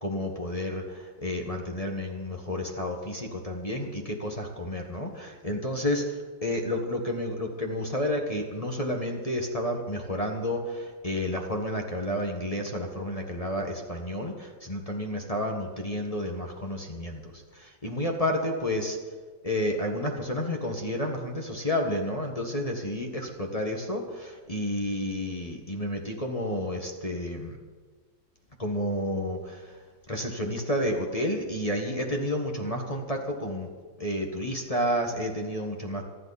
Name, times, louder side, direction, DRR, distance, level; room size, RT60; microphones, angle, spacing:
voice 1, 0.0-19.0 19.4-27.6 28.6-29.7 30.1-33.7 34.0-36.0, left 1 dB, 20° left, 2 dB, 1.4 m, -31 dB
27.0 x 10.5 x 4.2 m, 1.4 s
omnidirectional pair, 2.2 m